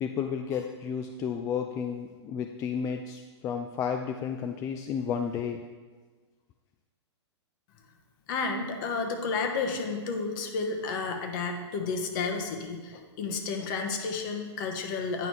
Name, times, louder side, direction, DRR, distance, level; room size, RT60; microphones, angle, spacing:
voice 1, 0.0-5.6, left 7 dB, 20° left, 5 dB, 0.3 m, -32 dB
voice 2, 8.3-15.3, left 4 dB, 45° left, 4 dB, 1.1 m, -31 dB
9.2 x 3.9 x 4.8 m, 1.4 s
hypercardioid pair, 115°, 15 cm